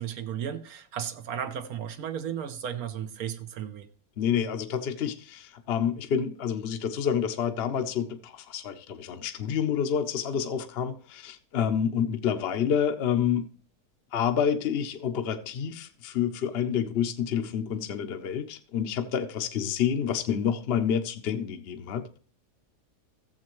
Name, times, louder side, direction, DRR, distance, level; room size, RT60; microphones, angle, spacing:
voice 1, 0.0-3.9, right 9 dB, 70° right, 1.2 m, -34 dB
voice 2, 4.2-13.5 14.1-22.2, left 8 dB, 50° left, 0.8 m, -28 dB
14.5 x 7.3 x 3.0 m
omnidirectional pair, 1.7 m